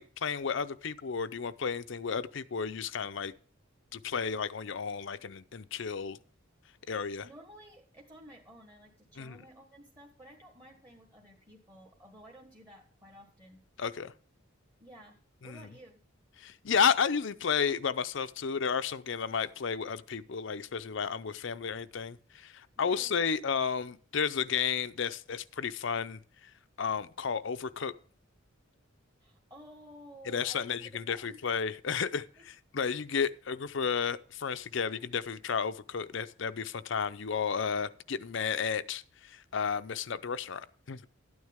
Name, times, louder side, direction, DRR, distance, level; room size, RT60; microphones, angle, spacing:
voice 1, 0.0-3.3 3.9-6.2 6.9-7.3 9.2-9.4 13.8-14.1 15.4-15.6 16.4-26.2 26.8-27.9 30.3-41.1, left 6 dB, 60° left, 0.6 m, -32 dB
voice 2, 7.2-13.6 14.8-16.0 22.8-23.3 29.2-31.4 32.1-32.5, equal, 20° right, 1.5 m, -53 dB
12.5 x 9.5 x 3.6 m
head